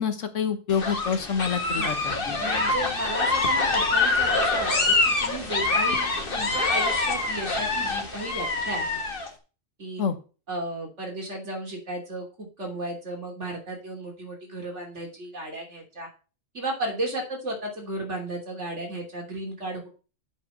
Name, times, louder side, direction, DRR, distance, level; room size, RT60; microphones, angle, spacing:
voice 1, 0.0-1.9 2.3-2.4 10.0-10.1, left 7 dB, 75° left, 9 dB, 1.5 m, -27 dB
sound 1, 0.7-9.3, left 3 dB, 45° left, 1.7 m, -25 dB
voice 2, 2.4-8.9 9.8-10.0 10.5-16.1 16.5-19.9, right 1 dB, 60° right, 0 dB, 3.3 m, -34 dB
8.3 x 5.3 x 6.6 m, 0.35 s
omnidirectional pair, 1.3 m